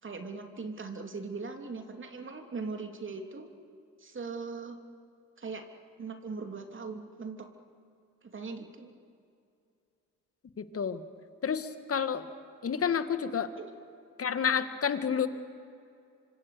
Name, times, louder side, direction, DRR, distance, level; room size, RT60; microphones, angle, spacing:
voice 1, 0.0-3.5 4.0-4.8 5.4-5.6 6.0-7.5 8.3-8.9 13.6-13.7, right 4 dB, 35° right, 5 dB, 3.2 m, -40 dB
voice 2, 10.6-11.0 11.4-12.3 12.6-13.5 14.2-15.3, left 7 dB, 40° left, 11 dB, 1.9 m, -29 dB
26.5 x 25.0 x 6.9 m, 2.5 s
hypercardioid pair, 60°, 35 cm